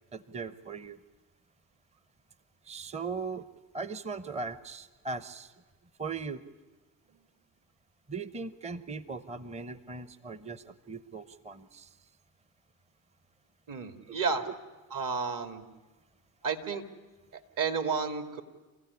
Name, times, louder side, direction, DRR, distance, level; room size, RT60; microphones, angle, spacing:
voice 1, 0.1-1.0 2.7-3.5 3.7-5.5 6.0-6.4 8.1-11.9 14.1-14.2 14.5-14.6, right 4 dB, 15° right, 15 dB, 0.9 m, -39 dB
voice 2, 13.7-14.5 14.9-15.6 16.4-16.8 17.6-18.4, right 5 dB, 50° right, 8 dB, 2.3 m, -31 dB
28.0 x 15.5 x 9.7 m, 1.2 s
supercardioid pair, 80°, 43 cm